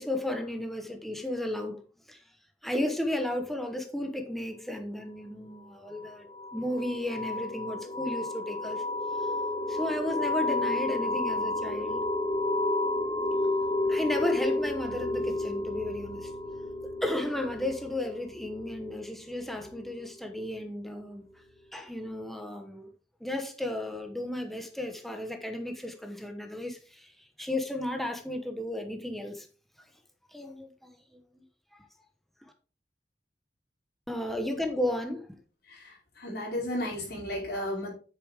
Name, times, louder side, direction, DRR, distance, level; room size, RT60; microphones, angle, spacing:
voice 1, 0.0-1.8 2.1-2.2 2.6-6.3 6.5-8.8 9.7-12.0 13.9-16.3 16.8-21.3 21.7-22.9 23.2-29.5 30.3-31.0 31.3-31.4 31.7-31.9 34.1-35.3, left 1 dB, ahead, 1.1 m, -34 dB
sound 1, 5.9-20.4, left 2 dB, 30° left, 1.2 m, -31 dB
voice 2, 35.7-37.9, left 1 dB, 60° left, 4.9 m, -34 dB
8.3 x 6.9 x 3.6 m
head